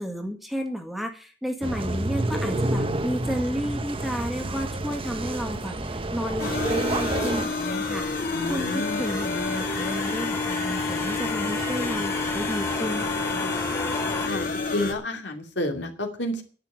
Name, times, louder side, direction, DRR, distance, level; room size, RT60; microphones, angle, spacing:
voice 1, 0.0-8.1 8.5-13.6, equal, ahead, 4 dB, 1.9 m, -32 dB
sound 1, 1.6-7.4, right 1 dB, 30° right, 1.0 m, -29 dB
sound 2, 5.8-14.3, left 2 dB, 15° left, 0.9 m, -35 dB
sound 3, 6.4-14.9, left 3 dB, 55° left, 2.8 m, -29 dB
voice 2, 8.3-9.0 14.2-14.5 14.7-16.4, left 1 dB, 75° left, 3 dB, 2.6 m, -30 dB
10.5 x 8.1 x 9.3 m, 0.42 s
head